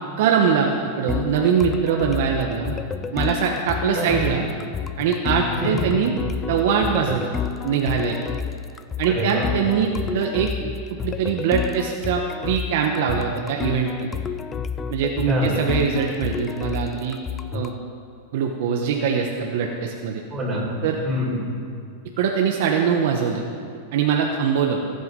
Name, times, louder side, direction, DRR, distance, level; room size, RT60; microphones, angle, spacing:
voice 1, 0.2-2.8 3.1-4.4 5.0-6.2 6.5-7.3 7.6-8.2 9.0-10.5 10.9-14.1 14.9-17.2 17.5-17.8 18.3-20.2 20.8-21.0 22.2-23.4 23.9-24.8, right 7 dB, 60° right, 1 dB, 1.3 m, -22 dB
sound 1, 1.1-17.8, left 7 dB, 15° left, 0.4 m, -30 dB
voice 2, 9.1-9.7 15.3-15.6 20.3-21.6, left 1 dB, 20° right, -4 dB, 4.8 m, -26 dB
25.0 x 9.5 x 5.4 m, 2.4 s
supercardioid pair, 155°, 0 cm